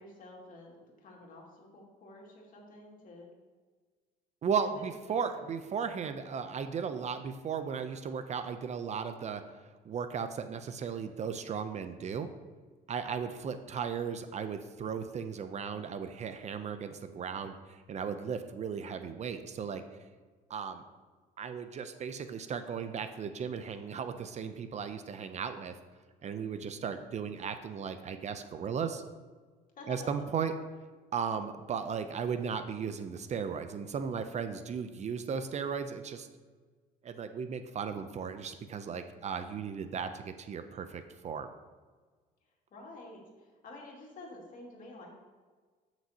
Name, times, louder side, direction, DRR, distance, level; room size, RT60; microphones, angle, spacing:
voice 1, 0.0-3.3 4.6-5.5 29.8-30.2 42.7-45.1, left 2 dB, 50° left, -1 dB, 2.3 m, -50 dB
voice 2, 4.4-9.4 9.8-12.3 12.9-19.8 20.5-20.8 21.4-25.8 26.2-29.0 29.9-30.5 31.1-36.3 37.0-41.5, right 6 dB, 40° right, 9 dB, 0.6 m, -36 dB
13.0 x 6.0 x 2.8 m, 1.4 s
cardioid pair, 110°, 17 cm